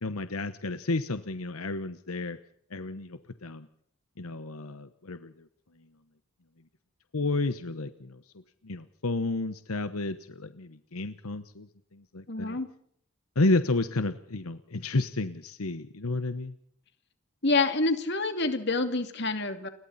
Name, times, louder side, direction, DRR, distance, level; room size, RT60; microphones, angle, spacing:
voice 1, 0.0-2.4 2.7-3.7 4.2-5.5 7.1-8.2 8.6-12.6 13.3-16.5, left 2 dB, 90° left, 11 dB, 1.1 m, -31 dB
voice 2, 12.3-12.7 17.4-19.7, left 3 dB, 50° left, 8 dB, 2.6 m, -27 dB
29.5 x 22.0 x 4.2 m, 0.65 s
head